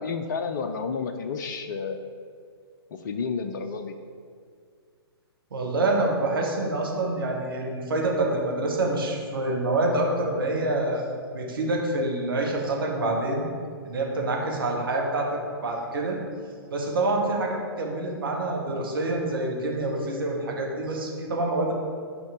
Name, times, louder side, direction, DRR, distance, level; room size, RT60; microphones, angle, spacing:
voice 1, 0.0-2.0 3.0-3.9, left 5 dB, 45° left, 7 dB, 0.6 m, -30 dB
voice 2, 5.5-11.0 11.3-13.5 13.8-15.3 15.6-16.2 16.7-21.7, right 2 dB, 60° right, -1 dB, 1.8 m, -26 dB
11.5 x 5.3 x 3.8 m, 2.2 s
figure-of-eight pair, 120°, 13 cm